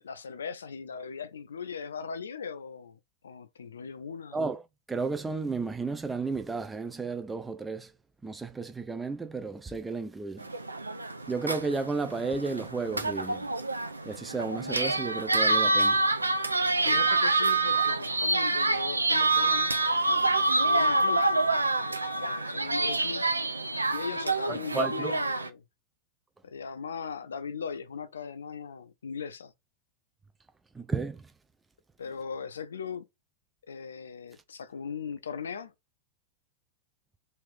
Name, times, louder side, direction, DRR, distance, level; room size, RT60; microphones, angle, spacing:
voice 1, 0.0-4.4 16.8-19.7 20.5-21.3 22.2-23.2 23.9-25.6 26.4-29.5 32.0-33.1 33.7-35.7, left 6 dB, 70° left, 0.4 m, -39 dB
voice 2, 4.3-4.6 4.9-7.9 8.2-10.5 11.3-13.5 14.1-16.0 24.5-25.2 30.7-31.2, right 4 dB, 10° right, 0.3 m, -33 dB
sound 1, 10.4-25.5, right 2 dB, 80° right, 0.4 m, -27 dB
3.2 x 2.6 x 3.5 m
figure-of-eight pair, 90°, 0 cm